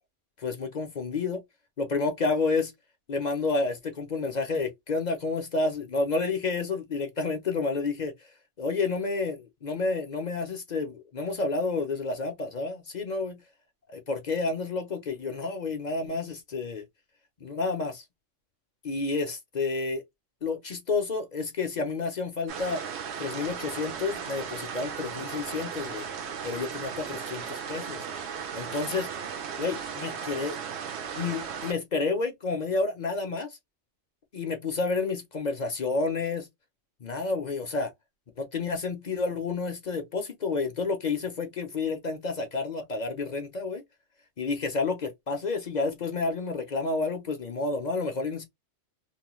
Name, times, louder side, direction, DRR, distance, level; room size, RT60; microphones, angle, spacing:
voice 1, 0.4-1.4 1.8-2.7 3.1-8.1 8.6-13.4 13.9-16.9 17.4-18.0 18.8-20.0 20.4-22.8 23.2-26.1 26.4-28.0 28.5-29.1 29.6-30.6 31.1-33.6 34.3-36.5 37.0-37.9 38.4-43.8 44.4-48.4, left 3 dB, 45° left, 0.7 m, -30 dB
sound 1, 22.5-31.7, right 7 dB, 70° right, 0.9 m, -36 dB
3.0 x 2.3 x 3.0 m
omnidirectional pair, 1.2 m